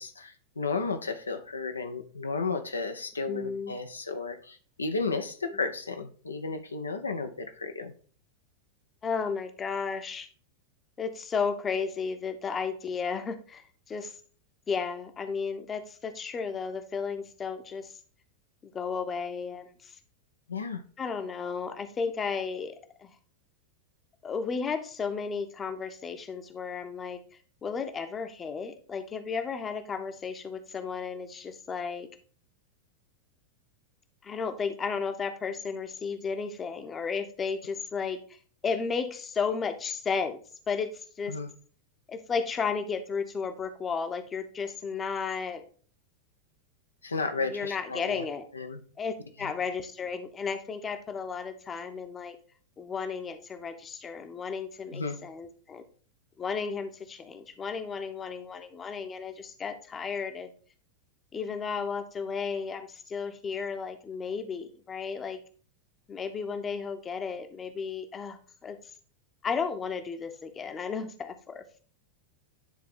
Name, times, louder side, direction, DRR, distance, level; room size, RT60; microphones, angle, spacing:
voice 1, 0.0-7.9 20.5-20.8 41.3-41.5 47.0-48.2 48.5-48.8 49.4-49.5 54.9-55.2, left 4 dB, 75° left, 6 dB, 0.7 m, -33 dB
voice 2, 3.3-3.7 5.5-5.6 9.0-10.3 11.0-14.1 14.7-17.9 18.6-19.9 21.0-23.1 24.2-27.2 27.6-32.1 34.2-38.2 38.6-40.4 40.7-41.3 42.1-45.6 47.4-48.4 49.0-52.4 52.8-55.8 56.4-60.5 61.3-65.4 66.1-68.8 69.4-71.8, left 5 dB, 20° left, 7 dB, 0.9 m, -33 dB
10.0 x 3.8 x 3.7 m, 0.42 s
figure-of-eight pair, 90°, 0 cm